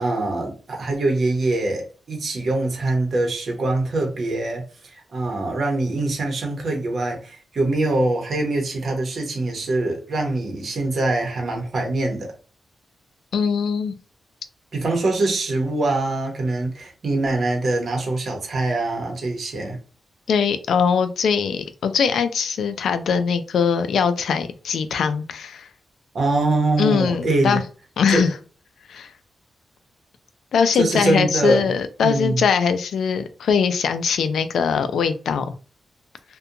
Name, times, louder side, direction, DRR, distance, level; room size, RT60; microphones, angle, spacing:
voice 1, 0.0-4.6 4.9-12.3 14.7-19.8 26.1-27.6 28.1-28.3 30.8-31.6 32.0-32.4, right 2 dB, 50° right, 0.8 m, -23 dB
voice 2, 13.3-13.9 20.3-25.7 26.8-27.6 28.0-28.3 28.9-29.1 30.5-35.5, left 6 dB, 90° left, 0.3 m, -21 dB
2.7 x 2.2 x 2.5 m
wide cardioid pair, 140°, 0 cm